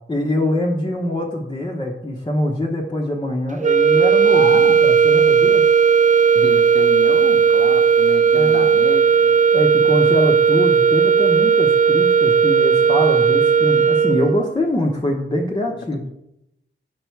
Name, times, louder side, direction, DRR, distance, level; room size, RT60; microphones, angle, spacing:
voice 1, 0.1-5.6 8.3-8.7 9.5-16.0, left 1 dB, 20° left, -1 dB, 0.9 m, -23 dB
sound 1, 3.6-14.5, right 6 dB, 40° right, 0.4 m, -15 dB
voice 2, 4.2-4.7 6.3-9.4 15.8-16.1, left 4 dB, 55° left, 4 dB, 0.8 m, -30 dB
6.9 x 5.3 x 4.5 m, 0.82 s
wide cardioid pair, 115°, 21 cm